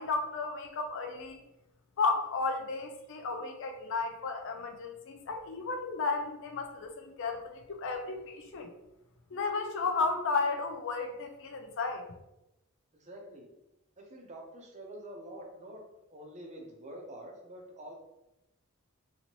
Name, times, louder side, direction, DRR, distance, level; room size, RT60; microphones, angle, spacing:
voice 1, 0.0-1.4 2.0-8.7 9.3-12.1, left 4 dB, 60° left, 5 dB, 0.4 m, -33 dB
voice 2, 12.9-13.5 14.0-15.8 16.1-17.9, right 1 dB, 30° right, 0 dB, 0.6 m, -46 dB
2.9 x 2.7 x 2.9 m, 0.91 s
head